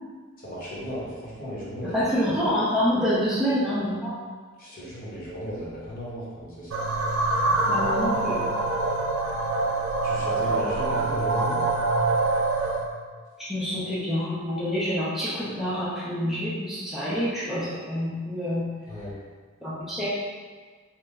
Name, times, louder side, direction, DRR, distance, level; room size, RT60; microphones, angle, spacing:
voice 1, 0.4-2.0 4.6-6.9 10.0-11.6 18.9-19.2, equal, 45° left, -8 dB, 1.0 m, -35 dB
voice 2, 1.8-4.2 7.7-8.4 13.4-18.7 19.6-20.1, equal, ahead, -11 dB, 0.6 m, -27 dB
sound 1, 6.7-12.9, right 2 dB, 85° right, 0.4 m, -25 dB
3.1 x 2.1 x 3.5 m, 1.5 s
head